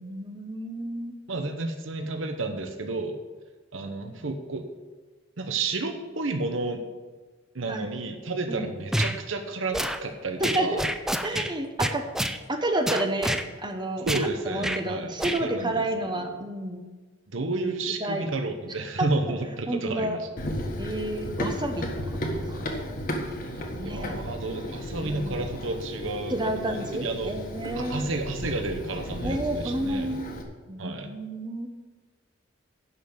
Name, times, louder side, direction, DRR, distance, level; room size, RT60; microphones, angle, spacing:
voice 1, 0.0-1.2 7.7-7.9 8.5-8.7 10.4-10.7 11.2-12.0 12.5-16.8 18.0-18.3 19.0-19.1 19.7-20.2 20.8-22.7 23.6-24.1 25.0-25.5 26.3-28.1 29.2-30.3 30.7-31.7, right 1 dB, 25° right, 5 dB, 1.0 m, -30 dB
voice 2, 1.3-3.2 3.7-4.6 5.4-6.8 7.5-10.9 14.0-16.4 17.3-20.3 23.9-27.4 27.8-30.1 30.8-31.1, right 3 dB, 75° right, 5 dB, 1.1 m, -31 dB
sound 1, 8.9-9.2 9.7-10.0 10.4-11.5 11.8-12.4 12.9-13.4 14.1-14.3 14.6-14.8 15.2-15.4, equal, ahead, 0.5 m, -27 dB
Run, 20.4-30.4, equal, 45° left, 1.6 m, -34 dB
11.0 x 5.5 x 7.9 m, 1.3 s
head